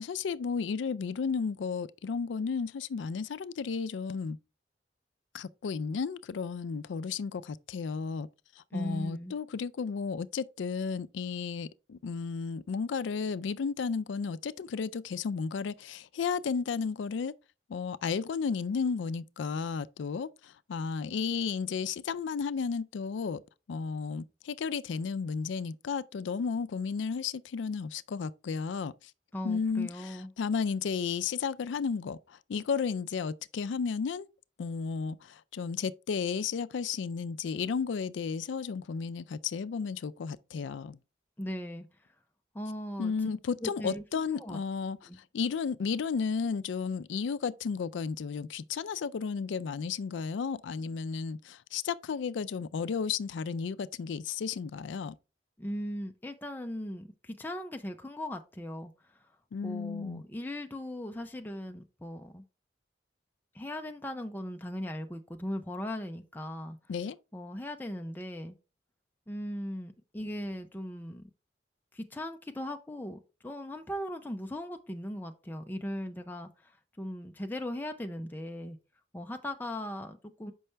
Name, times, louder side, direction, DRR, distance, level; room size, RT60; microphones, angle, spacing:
voice 1, 0.0-4.4 5.3-8.3 8.6-17.3 17.7-23.4 23.7-29.1 29.4-34.3 34.6-41.0 43.0-45.1 45.3-55.1 59.5-60.2 66.9-67.2, left 5 dB, 85° left, 0.4 m, -33 dB
voice 2, 8.7-9.4 29.3-30.3 41.4-41.9 42.5-43.1 43.6-44.6 45.1-45.2 55.6-58.9 59.6-62.4 63.5-66.8 67.3-68.6 69.3-71.2 71.9-76.7 77.0-78.8 79.1-80.5, left 1 dB, 10° left, 0.4 m, -38 dB
6.6 x 5.4 x 3.3 m
head